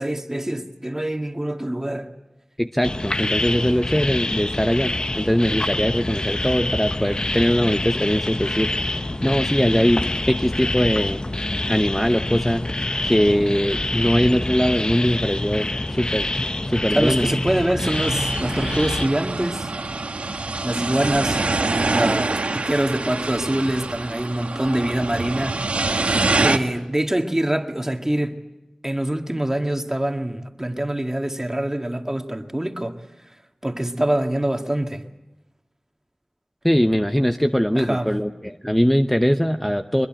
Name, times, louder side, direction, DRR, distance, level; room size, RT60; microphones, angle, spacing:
voice 1, 0.0-2.1 16.9-19.7 20.6-21.4 21.9-25.6 26.4-28.4 28.8-32.9 33.6-35.0 37.7-38.1, right 1 dB, 20° right, 1.9 m, -24 dB
voice 2, 2.6-11.2 11.7-12.6 13.0-16.3 16.7-17.3 36.6-40.1, equal, 5° left, 0.9 m, -21 dB
sound 1, 2.8-19.1, left 2 dB, 40° left, 0.8 m, -26 dB
sound 2, 17.8-26.6, right 3 dB, 80° right, 1.3 m, -25 dB
23.0 x 21.5 x 8.8 m
wide cardioid pair, 40°, 2 cm